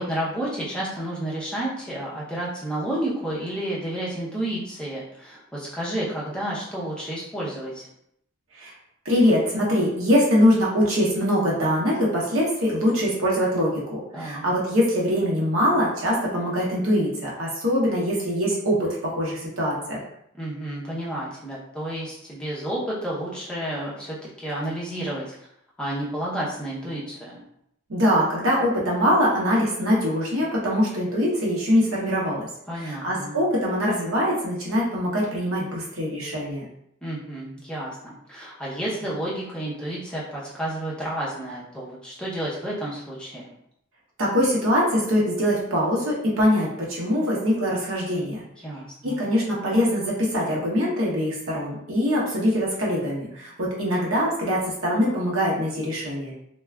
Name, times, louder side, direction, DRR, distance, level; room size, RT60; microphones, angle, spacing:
voice 1, 0.0-7.9 14.1-14.4 20.4-25.2 25.8-27.4 32.7-33.4 37.0-43.5 48.6-49.2, right 1 dB, 5° left, -7 dB, 0.6 m, -31 dB
voice 2, 9.0-20.0 27.9-32.5 32.8-36.6 44.2-48.4 49.0-56.3, equal, 80° right, -4 dB, 0.9 m, -23 dB
2.4 x 2.3 x 3.2 m, 0.74 s
head